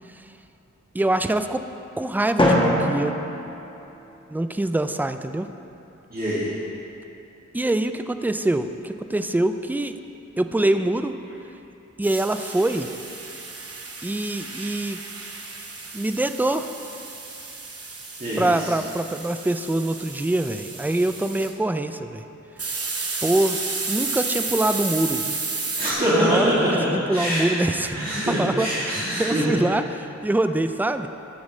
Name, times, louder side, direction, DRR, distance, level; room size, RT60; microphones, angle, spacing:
voice 1, 0.9-1.6 2.0-3.3 4.3-5.5 7.5-10.0 10.4-11.2 12.0-12.9 14.0-15.0 15.9-16.7 18.4-22.2 23.2-23.6 23.9-25.4 26.1-28.0 28.4-31.1, right 1 dB, 5° right, 9 dB, 0.3 m, -24 dB
Drum, 2.4-4.4, left 1 dB, 15° left, 1.2 m, -23 dB
voice 2, 6.1-6.5 18.2-18.5 25.7-26.7 27.1-27.4 27.9-29.5, equal, 30° right, -12 dB, 2.3 m, -23 dB
sound 1, 12.0-21.5 22.6-25.9, right 3 dB, 50° right, 0.8 m, -32 dB
15.5 x 6.2 x 3.2 m, 2.9 s
wide cardioid pair, 60°, 30 cm